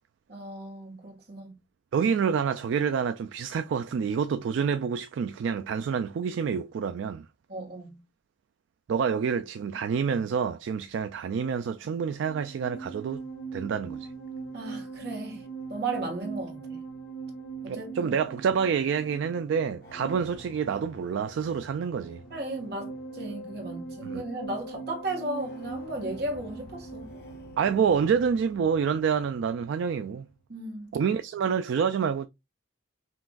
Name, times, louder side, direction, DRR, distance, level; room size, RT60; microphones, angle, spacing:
voice 1, 0.3-1.6 7.5-8.0 14.5-16.8 17.6-18.1 22.3-27.1 30.5-30.9, right 2 dB, 55° right, 1.4 m, -36 dB
voice 2, 1.9-7.2 8.9-13.2 13.5-14.1 17.7-22.2 24.0-24.2 27.6-30.2 30.9-32.3, right 6 dB, 75° right, 0.3 m, -27 dB
sound 1, 12.0-30.4, right 4 dB, 55° left, 1.3 m, -42 dB
5.7 x 2.5 x 2.3 m
head